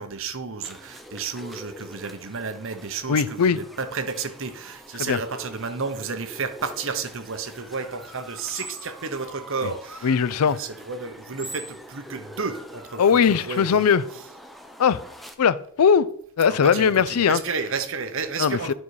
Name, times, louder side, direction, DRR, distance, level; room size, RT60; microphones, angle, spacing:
voice 1, 0.0-10.1 10.4-13.9 16.5-18.7, right 4 dB, 60° right, 0.9 m, -32 dB
sound 1, 0.6-15.3, equal, ahead, 0.6 m, -44 dB
voice 2, 3.1-3.6 5.0-5.2 10.0-10.6 13.0-14.0 14.8-15.0 15.4-16.1 16.4-17.4 18.4-18.7, left 6 dB, 90° left, 0.5 m, -19 dB
9.6 x 5.4 x 4.8 m
head